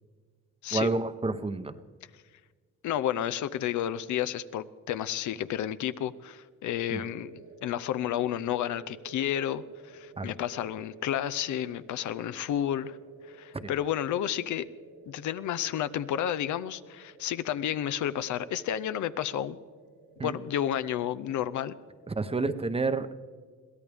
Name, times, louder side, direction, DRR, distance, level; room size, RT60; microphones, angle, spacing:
voice 1, 0.7-1.7 6.9-7.0 10.2-10.3 13.5-13.7 20.2-20.4 22.1-23.2, right 3 dB, 20° right, 11 dB, 0.8 m, -30 dB
voice 2, 2.8-13.0 13.4-14.7 15.1-19.6 20.2-21.7, left 10 dB, 75° left, 14 dB, 0.7 m, -31 dB
sound 1, 6.7-22.3, right 4 dB, 80° right, 2.9 m, -53 dB
22.5 x 16.0 x 3.5 m, 1.5 s
cardioid pair, 90°, 30 cm